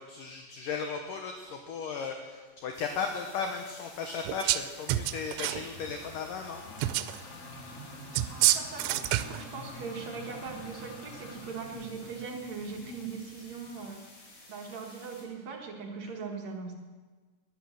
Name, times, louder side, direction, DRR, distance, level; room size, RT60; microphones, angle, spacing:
voice 1, 0.0-6.6, left 5 dB, 70° left, 4 dB, 2.2 m, -36 dB
sound 1, 2.7-15.2, left 2 dB, 85° left, 7.4 m, -54 dB
sound 2, 4.3-4.6 4.9-5.6 6.8-7.2 8.1-9.4, right 15 dB, 90° right, 2.8 m, -27 dB
sound 3, 4.7-14.0, left 2 dB, 45° left, 2.3 m, -47 dB
voice 2, 8.3-14.1 14.5-16.7, right 5 dB, 55° right, 1 dB, 2.3 m, -40 dB
19.5 x 11.0 x 6.5 m, 1.4 s
omnidirectional pair, 4.9 m